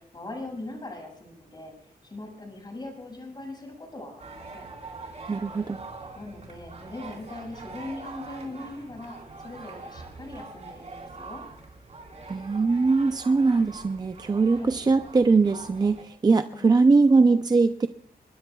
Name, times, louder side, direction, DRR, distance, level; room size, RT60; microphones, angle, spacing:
voice 1, 0.0-1.7 2.0-4.7 6.1-11.4 14.5-14.7 16.5-17.4, left 2 dB, 25° left, 1 dB, 6.3 m, -40 dB
sound 1, 4.2-16.0, right 3 dB, 45° right, 4.4 m, -43 dB
voice 2, 5.3-5.8 12.3-17.9, right 4 dB, 25° right, 9 dB, 0.5 m, -21 dB
23.5 x 20.5 x 2.3 m, 0.66 s
wide cardioid pair, 130°, 16 cm